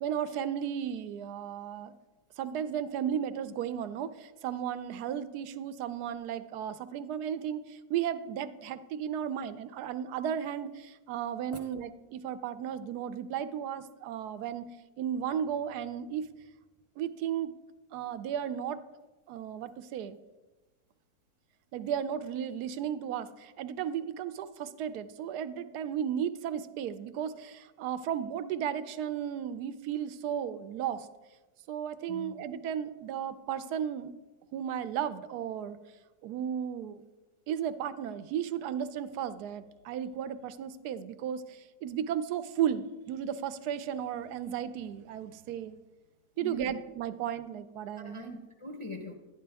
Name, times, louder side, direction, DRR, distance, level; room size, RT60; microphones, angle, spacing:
voice 1, 0.0-1.9 2.4-14.7 15.0-16.3 17.0-17.5 17.9-18.8 19.3-20.2 21.7-31.1 31.7-34.1 34.5-35.8 36.2-37.0 37.5-45.7 46.4-48.2, right 9 dB, 80° right, 13 dB, 1.1 m, -34 dB
voice 2, 46.4-46.7 48.0-49.1, left 1 dB, 35° left, 2 dB, 0.5 m, -42 dB
11.0 x 10.0 x 3.4 m, 1.2 s
omnidirectional pair, 1.7 m